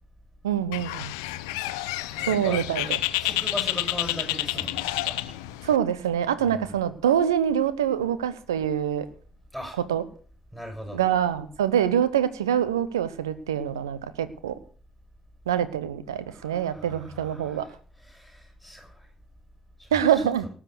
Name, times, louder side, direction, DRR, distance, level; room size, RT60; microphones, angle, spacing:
voice 1, 0.4-1.1 2.3-3.0 5.6-9.1 9.9-10.0 10.9-14.5 15.5-17.7 19.9-20.5, right 9 dB, 80° right, 15 dB, 1.0 m, -25 dB
Bird, 0.7-5.8, left 17 dB, 75° left, 0.7 m, -29 dB
voice 2, 2.1-5.4 6.4-6.7 9.5-9.8 10.5-11.0 16.3-17.7 18.0-19.1 19.8-19.9, equal, 5° right, 2 dB, 7.7 m, -39 dB
18.5 x 7.6 x 6.6 m, 0.41 s
figure-of-eight pair, 40°, 2 cm